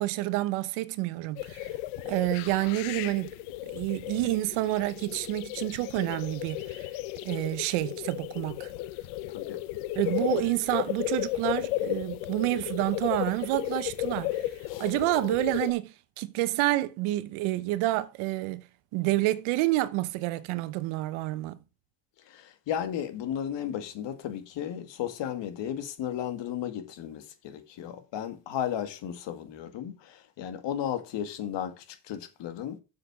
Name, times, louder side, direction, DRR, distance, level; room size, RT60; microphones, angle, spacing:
voice 1, 0.0-1.7 2.0-3.3 3.7-6.9 7.2-8.7 10.0-14.4 14.8-18.6 18.9-21.6, right 17 dB, 80° right, 1.0 m, -28 dB
sound 1, 1.4-15.7, left 15 dB, 85° left, 0.8 m, -34 dB
voice 2, 9.3-9.6 10.1-10.3 14.7-14.9 22.3-32.8, left 10 dB, 60° left, 2.0 m, -34 dB
7.5 x 6.5 x 6.0 m
cardioid pair, 125°, 48 cm